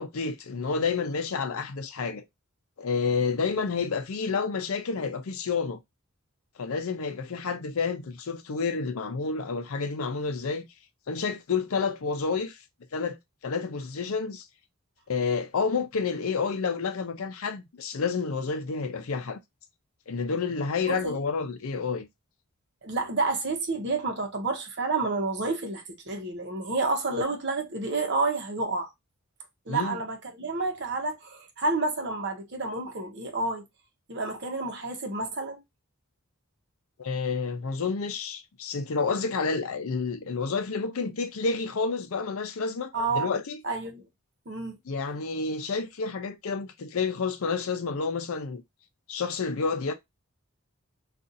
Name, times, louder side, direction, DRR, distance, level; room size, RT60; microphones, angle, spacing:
voice 1, 0.0-2.2 2.8-5.8 6.6-10.7 11.1-12.6 12.9-13.2 13.4-14.5 15.1-19.4 20.1-22.1 29.7-30.0 37.0-43.6 44.9-48.6 49.1-49.9, left 5 dB, 70° left, 0.5 m, -29 dB
voice 2, 20.9-21.2 22.8-28.9 29.7-33.6 34.1-35.6 42.9-43.3 43.6-44.0 44.5-44.8, right 3 dB, 50° right, 0.9 m, -29 dB
2.6 x 2.4 x 3.8 m
head